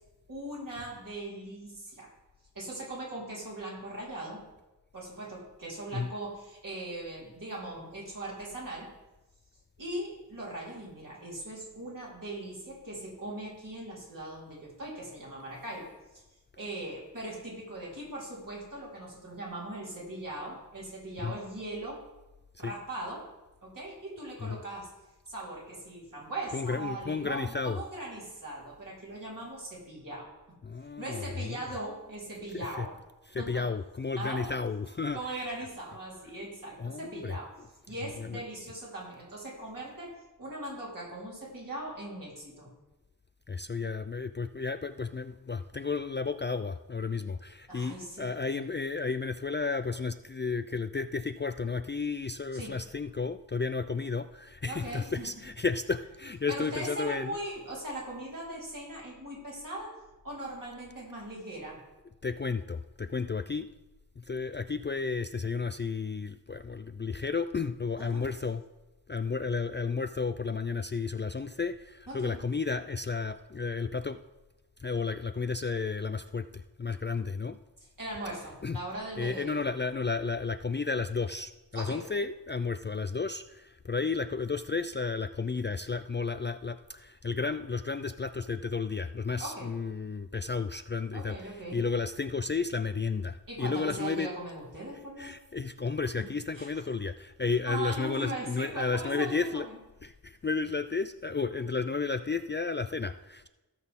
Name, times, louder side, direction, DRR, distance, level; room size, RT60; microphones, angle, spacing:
voice 1, 0.3-2.1 2.5-4.5 4.9-8.9 9.8-16.2 16.5-22.0 22.6-23.3 23.6-24.9 25.3-30.3 31.0-32.9 33.4-33.7 34.2-34.5 35.1-37.5 37.9-42.7 47.7-48.3 52.5-52.8 54.7-55.3 56.5-61.8 68.0-68.3 72.1-72.4 77.8-79.6 81.7-82.1 89.4-89.7 91.1-91.8 93.5-95.4 96.5-96.8 97.7-99.8, right 1 dB, 55° right, -5 dB, 4.1 m, -40 dB
voice 2, 26.5-27.8 30.6-31.6 32.5-32.9 33.3-35.2 36.8-37.4 38.2-38.4 43.5-57.4 62.2-63.7 64.2-68.6 69.1-74.2 74.8-77.6 78.6-78.8 79.2-94.3 95.2-99.7 100.0-103.5, left 4 dB, 30° left, 10 dB, 0.3 m, -32 dB
17.0 x 6.2 x 3.7 m, 1.0 s
wide cardioid pair, 70°, 38 cm